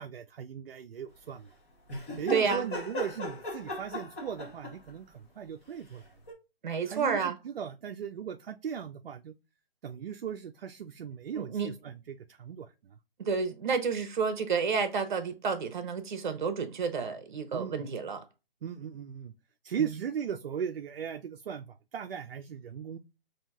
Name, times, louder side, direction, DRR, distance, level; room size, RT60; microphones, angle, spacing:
voice 1, 0.0-1.5 2.2-6.0 6.9-9.3 9.8-12.7 17.5-17.8 18.6-19.3 19.6-21.7 21.9-23.0, right 8 dB, 70° right, 0.5 m, -38 dB
sound 1, 1.9-4.9 6.3-6.4, left 1 dB, 15° left, 0.7 m, -37 dB
voice 2, 2.3-2.6 6.6-7.4 11.3-11.7 13.2-18.2, right 5 dB, 50° right, 0.8 m, -30 dB
5.6 x 2.7 x 2.3 m
hypercardioid pair, 160°, 30 cm